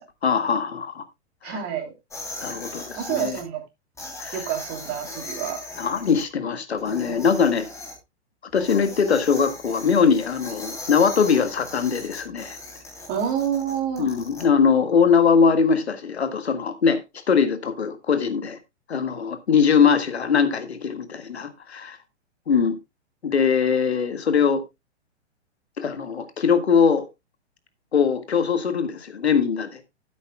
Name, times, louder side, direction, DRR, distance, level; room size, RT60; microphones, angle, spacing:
voice 1, 0.2-1.0 1.4-1.6 2.4-3.4 4.2-4.4 5.8-7.7 8.5-12.6 14.0-17.0 17.3-18.6 18.9-22.0 22.5-22.8 23.2-24.6 25.8-27.1 27.9-29.8, left 6 dB, 65° left, 1.8 m, -21 dB
voice 2, 1.4-1.9 3.0-3.6 4.3-5.6 7.1-7.2 13.1-14.1, right 9 dB, 30° right, 3.0 m, -28 dB
sound 1, 2.1-3.4 4.0-6.2 6.8-7.9 8.5-14.4, left 2 dB, 10° left, 3.0 m, -38 dB
15.0 x 8.3 x 2.2 m
figure-of-eight pair, 115°, 34 cm